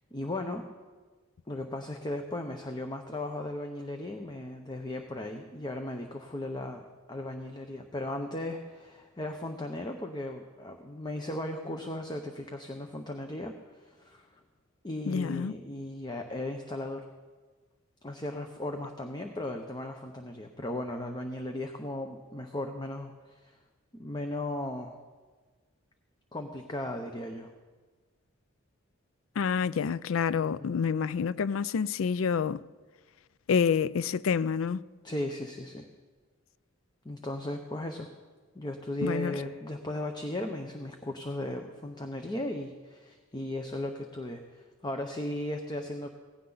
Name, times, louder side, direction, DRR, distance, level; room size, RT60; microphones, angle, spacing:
voice 1, 0.1-0.7 1.5-6.8 7.1-14.3 14.8-17.1 18.0-23.6 23.9-25.0 26.3-27.5 30.4-30.8 35.0-35.9 37.0-38.1 38.5-46.1, left 1 dB, 20° left, 0.8 m, -36 dB
voice 2, 15.1-15.5 29.4-32.6 33.5-34.8 39.0-39.3, left 6 dB, 80° left, 0.4 m, -28 dB
17.5 x 15.5 x 4.0 m
head